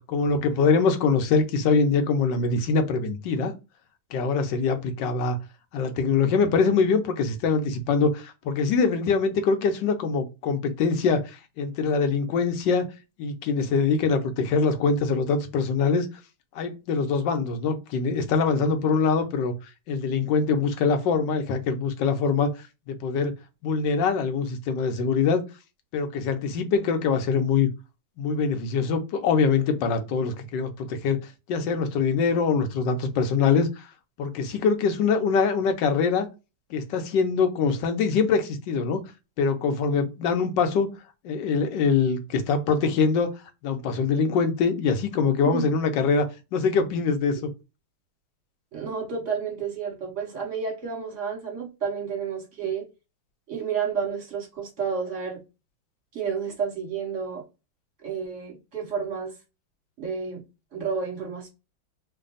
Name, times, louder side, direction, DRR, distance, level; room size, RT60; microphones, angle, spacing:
voice 1, 0.0-3.5 4.1-5.4 5.7-12.8 13.2-16.1 16.5-19.5 19.9-23.3 23.6-25.4 25.9-27.7 28.2-31.2 31.5-33.9 34.2-36.3 36.7-39.0 39.4-40.9 41.2-43.3 43.6-46.3 46.5-47.5, left 5 dB, 70° left, 1.3 m, -23 dB
voice 2, 48.7-52.9 53.5-55.4 56.1-57.4 58.0-59.3 60.0-60.4 60.7-61.5, right 6 dB, 40° right, 1.5 m, -30 dB
3.3 x 2.2 x 3.8 m
omnidirectional pair, 2.2 m